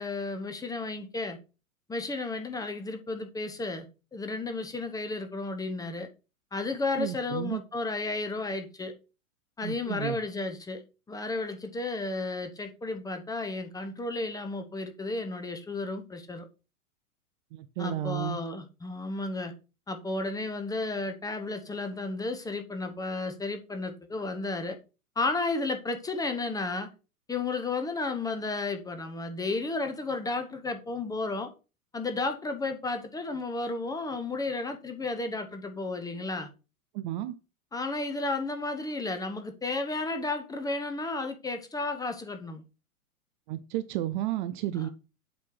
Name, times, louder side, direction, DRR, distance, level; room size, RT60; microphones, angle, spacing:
voice 1, 0.0-1.4 1.9-3.9 4.1-6.1 6.5-8.9 9.6-10.8 11.1-16.5 17.8-19.5 19.9-24.8 25.2-26.9 27.3-31.5 31.9-36.5 37.7-42.6 44.7-44.9, left 3 dB, 10° left, 0.9 m, -33 dB
voice 2, 7.0-7.6 9.6-10.2 17.5-18.4 36.9-37.3 43.5-44.9, right 13 dB, 35° right, 0.5 m, -32 dB
7.8 x 3.4 x 6.1 m
figure-of-eight pair, 100°, 43 cm